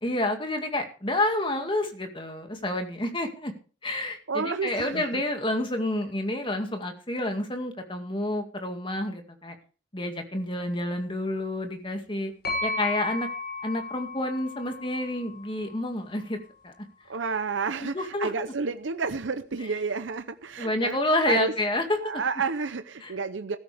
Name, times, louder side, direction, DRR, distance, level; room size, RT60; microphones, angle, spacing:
voice 1, 0.0-3.5 3.8-9.6 9.9-12.3 12.6-13.3 13.6-16.4 16.6-16.9 17.8-18.5 20.6-22.0 23.0-23.1, left 1 dB, 25° left, 5 dB, 2.2 m, -29 dB
voice 2, 4.3-5.2 17.1-21.0 21.3-21.5 22.0-23.6, right 4 dB, 80° right, 10 dB, 0.7 m, -30 dB
sound 1, 12.4-16.2, left 2 dB, 50° left, 7.0 m, -35 dB
15.0 x 13.5 x 3.5 m, 0.37 s
head